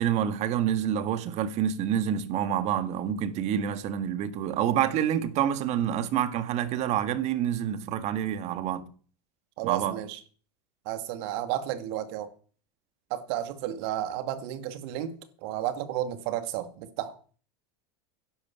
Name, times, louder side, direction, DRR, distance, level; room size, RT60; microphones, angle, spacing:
voice 1, 0.0-8.9 9.6-10.0, right 10 dB, 50° right, 1.8 m, -27 dB
voice 2, 9.6-10.2 10.9-12.3 13.1-15.1 15.4-17.4, right 12 dB, 65° right, 2.2 m, -32 dB
11.0 x 10.5 x 7.2 m
hypercardioid pair, 105°, 15 cm